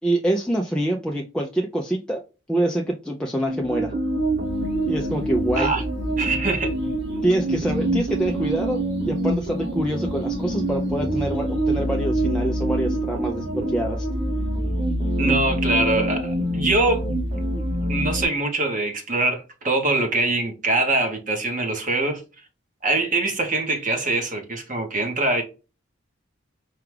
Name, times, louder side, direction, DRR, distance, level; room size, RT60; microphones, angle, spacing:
voice 1, 0.0-2.2 2.5-3.9 4.9-5.7 7.2-14.1, right 1 dB, 5° left, 0.3 m, -25 dB
sound 1, 3.5-18.2, right 1 dB, 55° right, 1.9 m, -25 dB
voice 2, 6.2-6.7 15.2-17.2 17.8-22.2 22.8-25.4, right 2 dB, 40° right, 1.0 m, -23 dB
4.7 x 2.3 x 3.2 m
head